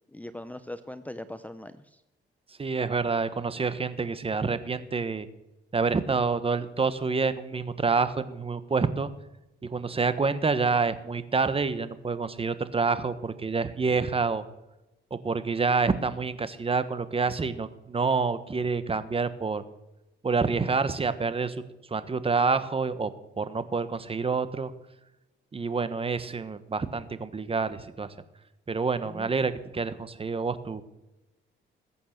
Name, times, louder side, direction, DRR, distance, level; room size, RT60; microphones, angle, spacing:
voice 1, 0.1-2.0 29.0-29.3, left 1 dB, 5° left, 12 dB, 0.8 m, -40 dB
voice 2, 2.6-5.3 5.7-9.1 9.7-14.4 15.1-19.6 20.2-21.6 21.9-23.1 23.4-24.7 25.5-28.1 28.7-30.8, right 4 dB, 30° right, 12 dB, 1.3 m, -27 dB
21.0 x 8.5 x 6.7 m, 0.97 s
cardioid pair, 90°, 20 cm